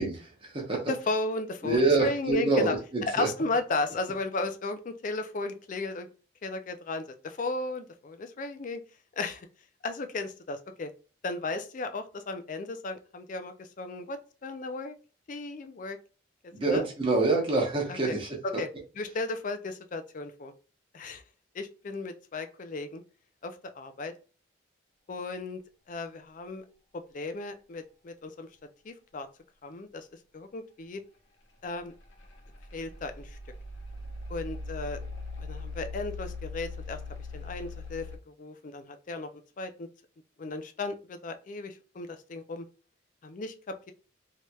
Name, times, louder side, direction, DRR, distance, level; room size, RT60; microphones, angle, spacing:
voice 1, 0.0-0.8 1.6-3.3 16.5-18.3, right 3 dB, 30° right, 0.8 m, -26 dB
voice 2, 0.9-2.8 3.1-6.1 6.4-8.8 9.2-9.5 9.8-10.9 11.2-14.9 15.3-16.0 16.7-16.9 17.9-18.1 18.6-18.7 19.0-20.5 20.9-21.2 21.5-23.0 23.4-24.1 25.1-25.6 25.9-26.6 27.1-28.5 28.8-29.3 29.6-30.1 30.3-31.0 31.6-31.9 32.7-33.4 34.3-35.0 35.4-37.0 37.3-39.3 39.6-39.9 40.4-42.7 43.2-43.5, left 3 dB, 40° left, 0.4 m, -35 dB
sound 1, 31.8-38.2, left 2 dB, 80° left, 1.0 m, -40 dB
3.1 x 2.8 x 2.3 m
head